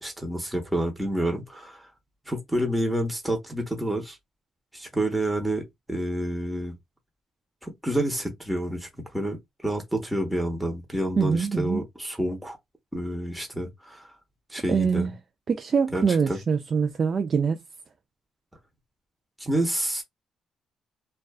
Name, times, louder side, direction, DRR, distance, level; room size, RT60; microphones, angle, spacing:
voice 1, 0.0-1.9 2.3-4.2 4.7-6.7 7.6-12.6 12.9-14.1 14.5-15.1 15.9-16.4 19.4-20.0, right 1 dB, 5° right, 0.9 m, -29 dB
voice 2, 11.2-11.8 14.7-15.1 15.5-17.6, right 6 dB, 45° right, 0.3 m, -24 dB
2.4 x 2.2 x 2.3 m
cardioid pair, 90°, 0 cm